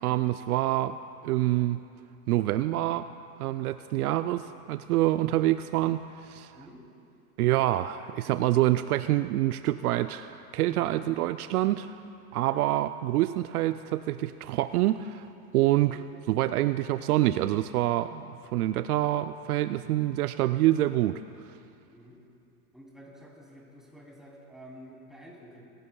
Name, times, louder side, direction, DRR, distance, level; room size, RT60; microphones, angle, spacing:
voice 1, 0.0-1.0 1.2-1.8 2.3-3.1 3.4-6.5 7.4-12.0 12.3-15.3 15.5-16.0 16.3-21.2, right 15 dB, 70° right, 11 dB, 0.6 m, -26 dB
voice 2, 21.9-22.2 22.7-25.6, equal, ahead, -4 dB, 3.1 m, -50 dB
23.0 x 16.5 x 2.3 m, 2.5 s
hypercardioid pair, 125°, 47 cm